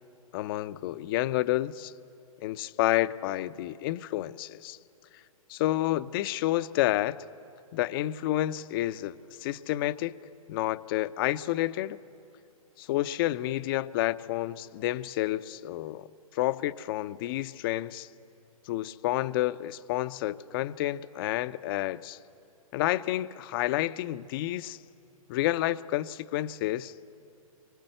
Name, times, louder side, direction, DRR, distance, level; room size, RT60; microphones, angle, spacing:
voice 1, 0.3-1.9 2.4-4.8 5.5-7.2 7.7-10.2 10.5-12.0 12.8-16.1 16.3-18.1 18.7-22.2 22.7-24.8 25.3-26.9, left 15 dB, 40° left, 0.6 m, -29 dB
25.0 x 23.5 x 7.8 m
figure-of-eight pair, 120°, 18 cm